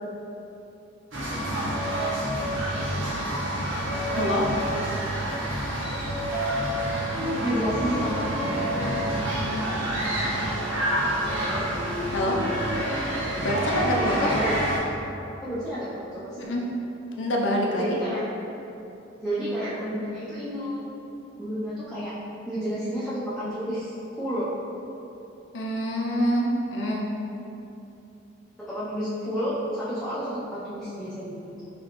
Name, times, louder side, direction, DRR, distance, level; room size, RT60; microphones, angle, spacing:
sound 1, 1.1-14.8, right 1 dB, 85° right, 1.1 m, -27 dB
voice 1, 4.1-4.5 12.1-12.4 13.4-14.3 16.4-16.6 17.2-18.0 25.5-27.1, equal, 70° left, -1 dB, 0.6 m, -25 dB
voice 2, 7.4-8.3 11.5-11.6 14.0-14.6 15.4-16.4 17.8-18.2 19.2-20.8 21.4-22.1 22.4-24.5 28.7-31.5, equal, ahead, -12 dB, 0.6 m, -30 dB
5.0 x 3.1 x 3.0 m, 2.9 s
head